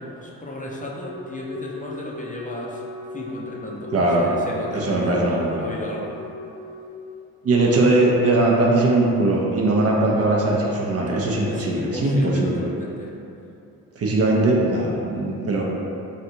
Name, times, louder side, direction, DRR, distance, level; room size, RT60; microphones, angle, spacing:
voice 1, 0.0-2.8 3.1-6.1 11.5-13.1, left 1 dB, 25° left, -3 dB, 0.5 m, -34 dB
Wind instrument woodwind instrument, 1.0-7.0, left 4 dB, 80° left, 0.6 m, -38 dB
voice 2, 3.9-4.3 4.7-5.6 7.4-12.6 14.0-15.6, right 2 dB, 45° right, -2 dB, 0.6 m, -20 dB
3.2 x 2.5 x 2.8 m, 2.7 s
supercardioid pair, 60°, 35 cm